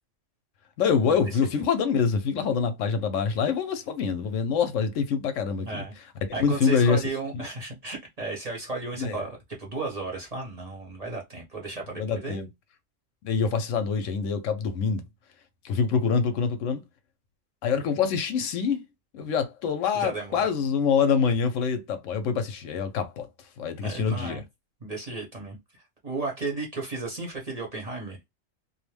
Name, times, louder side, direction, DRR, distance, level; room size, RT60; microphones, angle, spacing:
voice 1, 0.8-5.8 6.4-7.0 7.3-7.4 9.0-9.2 11.9-12.5 13.2-15.0 15.6-16.8 17.6-18.8 19.1-23.3 23.6-24.4, left 6 dB, 75° left, 0.9 m, -25 dB
voice 2, 5.6-5.9 6.3-12.5 19.9-20.5 23.8-24.4 24.8-28.2, right 3 dB, 35° right, 0.8 m, -34 dB
2.6 x 2.1 x 3.1 m
omnidirectional pair, 1.3 m